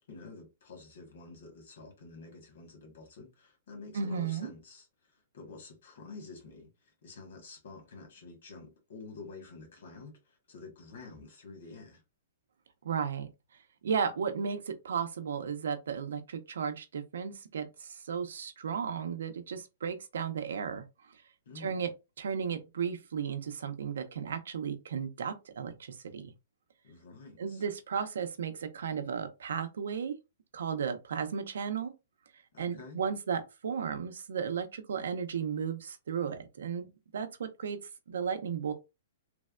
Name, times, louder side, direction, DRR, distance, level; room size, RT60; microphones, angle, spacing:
voice 1, 0.0-12.0 21.4-21.8 26.8-27.6 32.5-33.0, left 3 dB, 60° left, 1.3 m, -49 dB
voice 2, 3.9-4.5 12.8-13.3 13.8-20.8 21.6-21.9 22.2-26.3 27.4-30.2 30.5-31.9 32.6-37.8 38.1-38.7, right 6 dB, 80° right, 0.5 m, -34 dB
3.3 x 2.1 x 2.4 m
hypercardioid pair, 175°, 0 cm